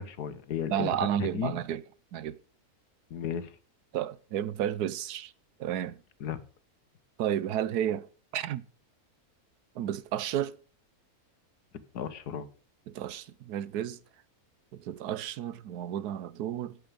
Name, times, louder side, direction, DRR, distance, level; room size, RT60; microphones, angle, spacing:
voice 1, 0.0-0.9 1.2-1.5 3.1-3.6 6.2-6.4 11.9-12.5, left 8 dB, 85° left, 1.6 m, -34 dB
voice 2, 0.7-1.8 2.1-2.4 3.9-5.3 5.6-6.0 7.2-8.1 8.3-8.6 9.7-10.6 12.9-14.0 14.7-16.8, right 10 dB, 85° right, 1.3 m, -32 dB
9.1 x 8.1 x 6.7 m
omnidirectional pair, 1.6 m